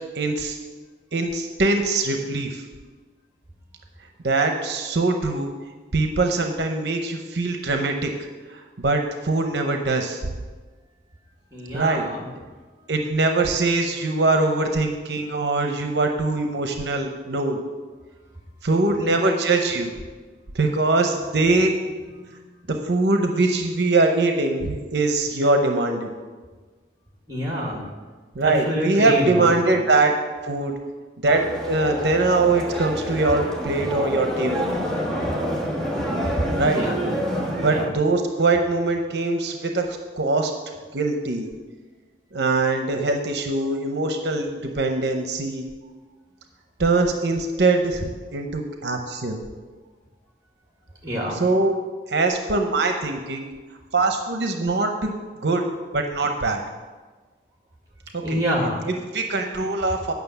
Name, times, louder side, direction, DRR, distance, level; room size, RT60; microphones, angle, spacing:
voice 1, 0.1-0.6 1.1-2.6 4.2-5.5 5.9-8.1 8.5-10.2 11.7-12.1 12.9-17.6 18.6-19.9 20.5-21.7 22.7-26.2 28.4-30.1 30.4-30.7 31.2-34.7 36.5-36.9 37.6-40.5 40.9-41.5 42.3-45.7 46.8-49.4 51.3-51.8 52.1-53.5 53.9-55.1 55.4-55.6 55.9-56.6 58.1-58.4 58.9-60.1, right 3 dB, 70° right, 4 dB, 0.8 m, -22 dB
voice 2, 11.5-12.3 18.9-19.1 27.3-27.9 28.4-29.8 36.7-37.0 37.7-37.8 51.0-51.4 58.2-58.8, equal, 20° right, -1 dB, 2.0 m, -26 dB
sound 1, 31.3-37.9, equal, 5° left, 1.3 m, -27 dB
9.5 x 6.0 x 6.8 m, 1.4 s
head